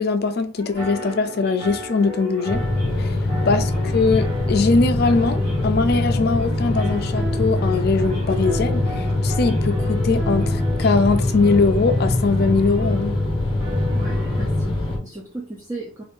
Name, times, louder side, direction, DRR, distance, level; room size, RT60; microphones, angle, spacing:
voice 1, 0.0-2.6 3.0-3.2 3.4-13.2, left 4 dB, 45° left, 0.4 m, -21 dB
Male speech man speaking / Siren, 0.5-15.3, right 1 dB, 85° right, 1.4 m, -42 dB
sound 1, 0.7-14.5, equal, 45° right, 1.1 m, -35 dB
sound 2, 2.5-15.0, left 2 dB, 25° left, 0.8 m, -23 dB
voice 2, 13.9-16.0, right 2 dB, 15° right, 0.5 m, -36 dB
2.6 x 2.5 x 3.5 m
head